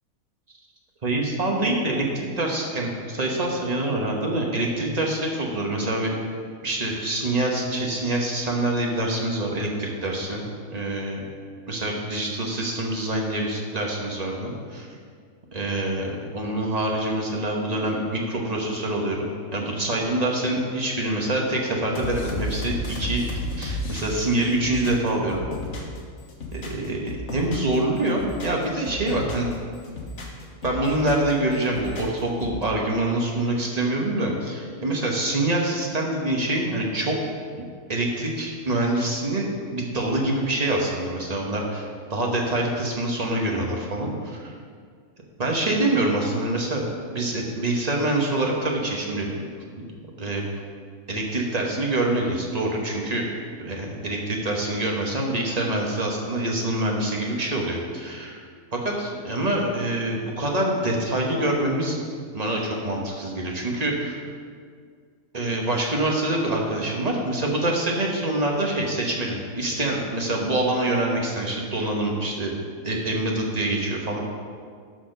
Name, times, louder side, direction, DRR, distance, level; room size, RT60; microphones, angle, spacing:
voice 1, 1.0-6.1 6.6-10.5 10.7-11.2 11.7-14.9 15.5-25.5 25.8-25.9 26.5-29.5 30.6-37.2 37.6-37.7 37.9-44.5 45.4-46.8 47.1-49.3 50.2-50.5 51.1-53.2 53.6-58.4 58.7-62.0 62.3-64.1 65.3-72.6 72.8-74.2, right 1 dB, 30° right, -1 dB, 1.2 m, -25 dB
sound 1, 21.9-26.0 26.3-27.8 28.1-29.5 29.8-31.3 31.6-32.6, left 1 dB, 55° left, 1.5 m, -33 dB
12.5 x 4.3 x 5.3 m, 2.1 s
omnidirectional pair, 1.5 m